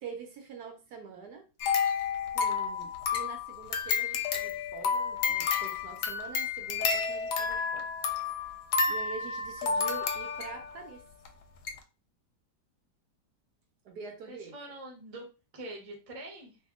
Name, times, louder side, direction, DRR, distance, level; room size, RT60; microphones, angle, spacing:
voice 1, 0.0-1.5 2.3-8.5 8.8-11.0 13.8-14.5, right 5 dB, 70° right, 3 dB, 1.2 m, -45 dB
sound 1, 1.6-10.8 11.3-11.4 11.7-11.8, left 5 dB, 75° left, 1.1 m, -30 dB
voice 2, 14.3-15.3 15.5-16.6, right 1 dB, 25° right, 0 dB, 0.8 m, -44 dB
2.8 x 2.5 x 3.6 m, 0.30 s
omnidirectional pair, 1.9 m